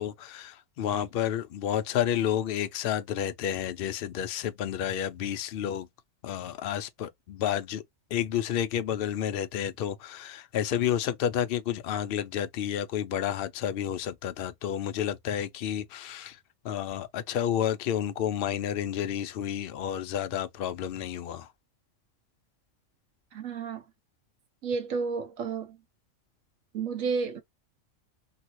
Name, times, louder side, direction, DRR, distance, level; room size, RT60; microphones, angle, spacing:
voice 1, 0.0-5.9 6.2-7.8 8.1-16.4 16.6-21.5, left 10 dB, 65° left, 0.6 m, -30 dB
voice 2, 23.3-23.8 24.6-25.8 26.7-27.4, right 5 dB, 75° right, 1.3 m, -31 dB
2.9 x 2.8 x 2.9 m
omnidirectional pair, 1.4 m